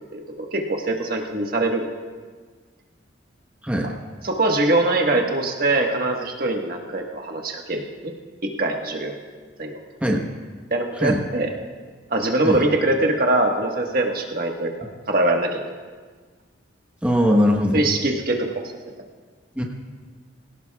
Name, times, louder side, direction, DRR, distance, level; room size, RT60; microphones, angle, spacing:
voice 1, 0.1-1.9 4.2-8.1 8.4-9.1 9.6-9.8 10.7-11.5 12.1-14.7 15.1-15.6 17.7-18.7, right 2 dB, 50° right, 1 dB, 1.5 m, -23 dB
voice 2, 17.0-17.8 19.6-19.7, equal, 5° right, 0 dB, 1.1 m, -20 dB
22.0 x 17.5 x 2.3 m, 1.5 s
head